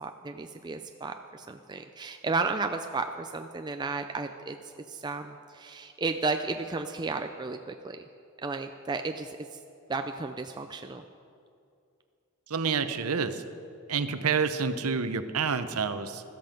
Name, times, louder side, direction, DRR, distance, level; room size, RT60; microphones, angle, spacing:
voice 1, 0.0-8.0 8.4-9.6 9.9-11.0, right 3 dB, 20° right, 6 dB, 0.4 m, -33 dB
voice 2, 12.5-13.4 13.9-16.2, right 5 dB, 80° right, 10 dB, 0.8 m, -28 dB
14.0 x 13.0 x 5.2 m, 2.5 s
head